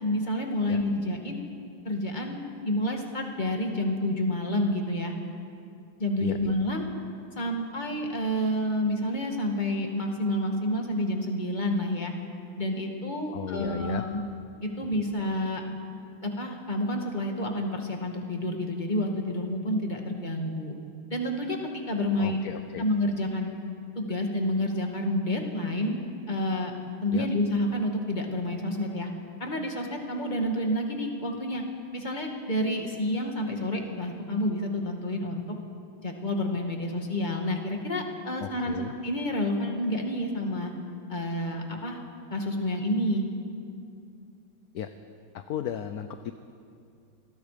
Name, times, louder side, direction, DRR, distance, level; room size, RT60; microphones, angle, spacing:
voice 1, 0.0-1.4 1.8-5.1 6.0-6.9 7.4-12.1 12.6-14.2 14.6-15.6 16.2-20.8 21.1-22.4 22.8-23.5 23.9-26.7 27.0-29.1 29.4-31.6 31.9-35.4 36.0-40.7 41.1-42.0 42.3-43.2, left 1 dB, 25° left, 2 dB, 2.3 m, -29 dB
voice 2, 6.2-6.5 13.3-14.0 22.2-22.9 27.1-27.3 38.4-38.9 44.7-44.9 45.3-46.3, left 9 dB, 60° left, 9 dB, 1.1 m, -35 dB
28.5 x 20.5 x 5.2 m, 2.5 s
omnidirectional pair, 2.1 m